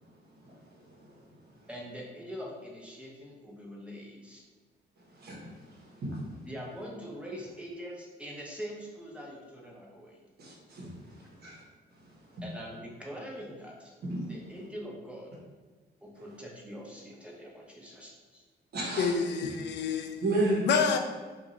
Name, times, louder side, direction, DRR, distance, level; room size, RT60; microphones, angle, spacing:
voice 1, 0.4-1.2 5.1-6.2 10.4-11.6 12.0-12.4 14.0-14.2 18.7-19.1 19.4-19.8 20.2-20.7, right 2 dB, 60° right, 1.1 m, -34 dB
voice 2, 1.7-4.4 6.5-10.2 12.4-13.9 14.3-15.3 16.0-18.4, equal, 5° right, 0.8 m, -43 dB
voice 3, 19.0-20.2 20.7-21.0, left 6 dB, 70° left, 0.4 m, -28 dB
2.6 x 2.6 x 4.1 m
cardioid pair, 105°, 19 cm